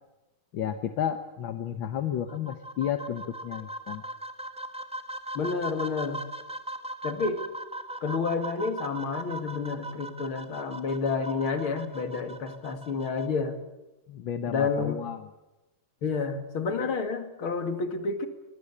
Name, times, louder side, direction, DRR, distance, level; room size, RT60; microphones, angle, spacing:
voice 1, 0.5-4.0 14.1-15.3, left 9 dB, 70° left, 8 dB, 1.8 m, -32 dB
sound 1, 2.3-13.3, right 1 dB, 5° right, 1.0 m, -39 dB
voice 2, 5.3-6.2 7.0-7.4 8.0-13.6 14.5-15.0 16.0-18.3, left 4 dB, 90° left, 7 dB, 3.1 m, -30 dB
23.5 x 21.5 x 8.6 m, 1.0 s
omnidirectional pair, 2.2 m